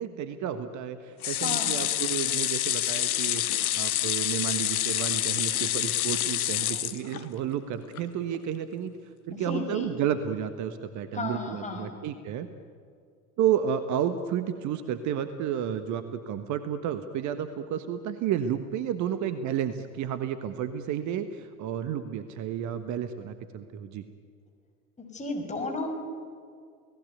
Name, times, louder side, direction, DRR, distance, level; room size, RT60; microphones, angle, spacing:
voice 1, 0.0-3.4 3.7-8.9 9.3-12.5 13.4-24.1, right 9 dB, 40° right, 11 dB, 1.4 m, -31 dB
sound 1, 1.2-7.5 7.9-8.0 8.3-8.4, left 12 dB, 70° left, 1.2 m, -27 dB
voice 2, 1.4-1.8 9.3-9.9 11.1-11.9 25.0-25.9, left 3 dB, 15° left, 2 dB, 5.9 m, -34 dB
29.5 x 18.0 x 9.3 m, 2.2 s
figure-of-eight pair, 75°, 45 cm